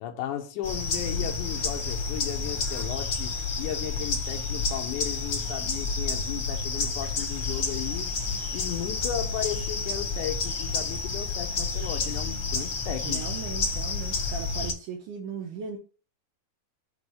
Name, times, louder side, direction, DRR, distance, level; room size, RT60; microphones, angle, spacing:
voice 1, 0.0-3.3 3.6-8.1 8.5-13.3, left 11 dB, 75° left, 1.9 m, -35 dB
sound 1, 0.6-14.7, left 4 dB, 60° left, 1.2 m, -30 dB
voice 2, 13.0-15.8, right 6 dB, 75° right, 2.3 m, -37 dB
6.1 x 3.1 x 5.4 m
omnidirectional pair, 4.1 m